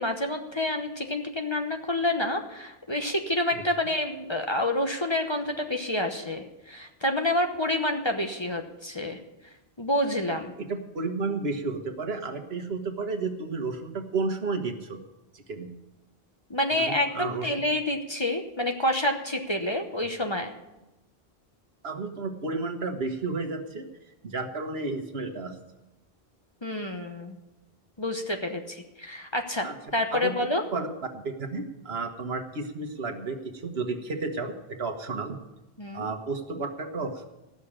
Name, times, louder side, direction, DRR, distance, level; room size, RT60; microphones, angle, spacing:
voice 1, 0.0-9.2 9.8-10.5 16.5-20.5 26.6-27.4 28.0-29.7 29.9-30.6 35.8-36.1, left 1 dB, 25° left, 4 dB, 1.0 m, -28 dB
voice 2, 10.7-15.0 15.3-15.7 16.7-17.5 21.8-23.9 24.2-25.5 29.6-29.7 30.1-30.9 31.1-35.4 35.9-37.2, right 3 dB, 70° right, 6 dB, 1.5 m, -32 dB
15.0 x 6.5 x 8.7 m, 0.98 s
omnidirectional pair, 1.1 m